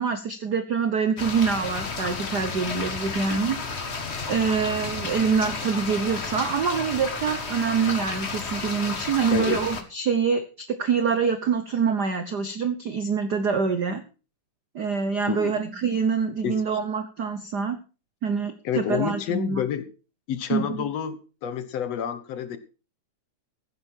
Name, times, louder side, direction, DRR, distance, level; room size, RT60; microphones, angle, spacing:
voice 1, 0.0-3.6 4.3-10.4 10.8-14.0 14.7-17.8 18.2-19.6 20.5-20.8, right 6 dB, 70° right, 10 dB, 1.0 m, -25 dB
sound 1, 1.2-9.8, left 4 dB, 30° left, 1.2 m, -32 dB
voice 2, 9.3-9.6 15.3-15.5 16.4-16.8 18.6-19.9 20.3-22.6, left 9 dB, 65° left, 12 dB, 2.2 m, -29 dB
15.0 x 10.5 x 4.5 m, 0.34 s
omnidirectional pair, 3.3 m